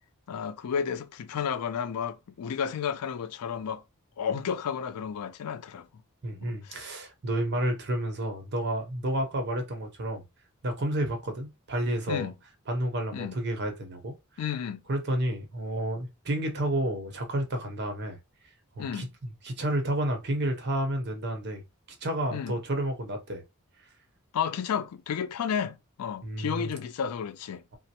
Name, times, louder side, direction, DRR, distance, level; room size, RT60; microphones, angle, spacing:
voice 1, 0.3-3.8 4.2-5.9 6.4-6.9 12.1-12.3 13.1-13.4 14.4-14.8 18.8-19.1 22.3-22.5 24.3-27.6, left 7 dB, 90° left, 0.4 m, -32 dB
voice 2, 6.2-10.2 10.6-12.3 12.7-14.2 14.9-18.2 18.8-21.6 22.0-23.4 26.2-26.7, right 1 dB, 50° right, 0.8 m, -30 dB
3.0 x 2.0 x 2.8 m
head